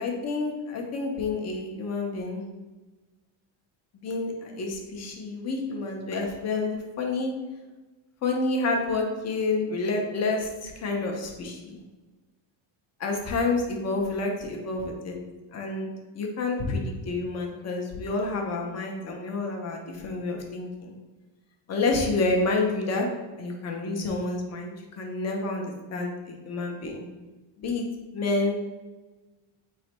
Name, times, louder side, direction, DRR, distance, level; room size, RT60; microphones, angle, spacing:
voice 1, 0.0-2.4 3.9-7.3 8.2-11.8 13.0-15.2 15.5-20.9 21.7-23.1 23.4-27.1 27.6-27.8 28.1-28.6, left 3 dB, 35° left, 2 dB, 0.5 m, -29 dB
4.1 x 3.1 x 2.9 m, 1.2 s
cardioid pair, 180°, 47 cm